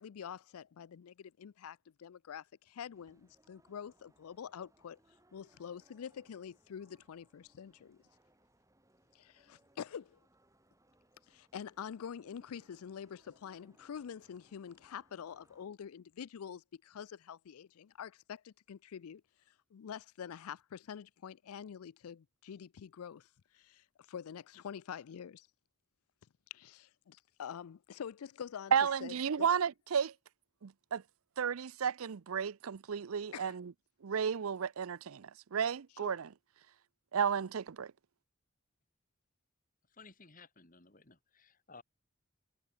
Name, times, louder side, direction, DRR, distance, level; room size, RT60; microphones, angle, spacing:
voice 1, 0.0-5.0 5.3-8.0 9.1-10.2 11.3-19.2 19.5-25.5 26.5-28.7 29.0-29.5 33.3-33.5 36.0-36.1, left 8 dB, 90° left, 0.4 m, -46 dB
sound 1, 2.9-15.7, right 1 dB, 15° right, 5.3 m, -70 dB
voice 2, 28.7-30.1 30.6-31.0 31.4-33.7 34.0-36.3 37.1-37.9, right 7 dB, 80° right, 0.5 m, -33 dB
voice 3, 39.9-41.8, left 4 dB, 40° left, 2.4 m, -57 dB
head